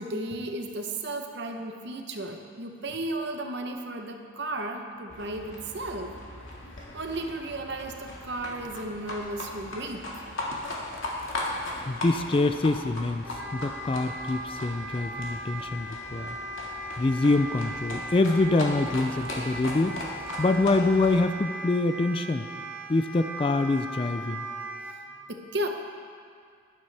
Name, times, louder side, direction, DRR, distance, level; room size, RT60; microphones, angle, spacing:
voice 1, 0.0-6.2 6.9-10.2 25.3-25.7, right 1 dB, 55° right, 4 dB, 0.9 m, -34 dB
Livestock farm animals working animals, 5.1-21.2, left 1 dB, 75° left, 1.9 m, -38 dB
voice 2, 11.7-13.3 13.5-16.4 17.0-20.0 20.4-22.5 22.9-24.4, left 2 dB, 25° left, 8 dB, 0.3 m, -25 dB
Wind instrument woodwind instrument, 13.2-25.0, right 1 dB, 5° right, 0.9 m, -39 dB
12.5 x 11.0 x 3.4 m, 2.2 s
head